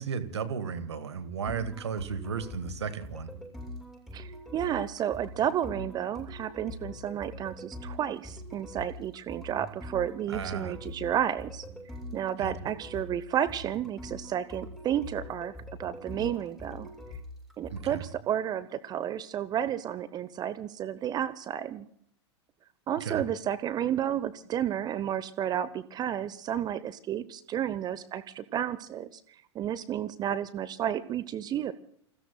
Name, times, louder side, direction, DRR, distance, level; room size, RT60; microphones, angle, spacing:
voice 1, 0.0-3.3 10.3-10.8 12.4-12.5 17.7-18.0 23.0-23.2, right 6 dB, 70° right, 13 dB, 1.6 m, -34 dB
sound 1, 1.5-18.1, left 1 dB, ahead, 7.9 m, -43 dB
voice 2, 4.1-11.6 12.1-15.5 15.8-16.9 17.6-21.9 22.9-31.7, right 10 dB, 25° right, 17 dB, 0.8 m, -32 dB
29.0 x 21.0 x 2.3 m, 0.68 s
figure-of-eight pair, 90°, 15 cm